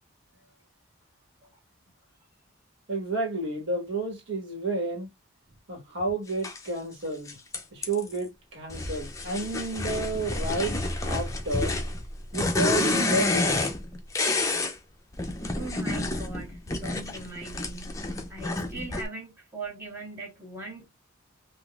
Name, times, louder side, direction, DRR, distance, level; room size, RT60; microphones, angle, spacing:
voice 1, 2.9-5.1 5.7-7.3 7.7-11.8 12.3-13.6, right 2 dB, 70° right, 1.4 m, -31 dB
sound 1, 6.4-6.6 7.3-8.2 8.7-14.7 15.1-19.0, left 2 dB, 15° left, 0.5 m, -29 dB
voice 2, 15.6-18.0 18.3-20.8, right 3 dB, 10° right, 1.5 m, -40 dB
3.8 x 2.5 x 2.3 m
head